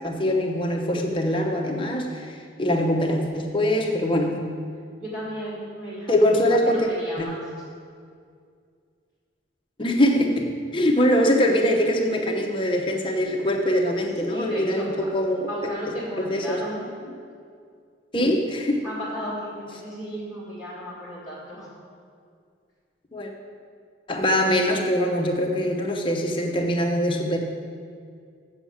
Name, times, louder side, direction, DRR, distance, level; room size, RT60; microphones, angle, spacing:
voice 1, 0.0-4.5 6.1-6.9 7.2-7.3 9.8-15.5 16.2-16.6 18.1-18.8 23.1-23.3 24.1-27.4, equal, 25° left, 1 dB, 0.9 m, -23 dB
voice 2, 5.0-6.2 6.6-7.5 14.3-15.1 15.5-17.2 18.8-21.8, equal, 20° right, -8 dB, 2.0 m, -35 dB
7.2 x 7.0 x 7.1 m, 2.2 s
head